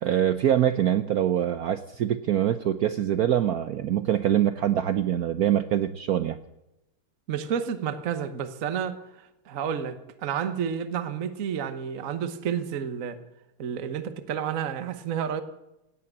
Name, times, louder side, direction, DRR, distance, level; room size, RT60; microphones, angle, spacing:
voice 1, 0.0-6.4, right 11 dB, 80° right, 11 dB, 0.8 m, -24 dB
voice 2, 7.3-9.0 9.5-13.2 13.6-15.4, right 8 dB, 45° right, 11 dB, 1.2 m, -30 dB
17.5 x 8.6 x 8.7 m, 0.92 s
omnidirectional pair, 2.4 m